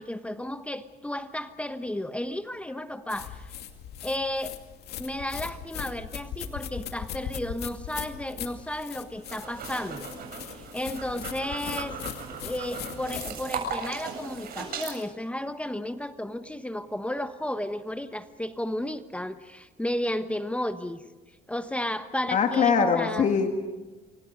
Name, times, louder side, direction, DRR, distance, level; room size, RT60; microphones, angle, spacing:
voice 1, 0.0-3.5 4.0-4.6 5.0-10.1 10.4-12.0 12.4-21.0 21.5-23.3, left 1 dB, 5° left, 10 dB, 1.2 m, -33 dB
sound 1, 3.1-13.3, left 9 dB, 75° left, 2.5 m, -39 dB
sound 2, 9.2-15.0, right 5 dB, 65° right, 7.9 m, -37 dB
voice 2, 22.3-23.5, left 6 dB, 45° left, 4 dB, 2.2 m, -22 dB
29.0 x 24.5 x 5.3 m, 1.2 s
cardioid pair, 110°, 17 cm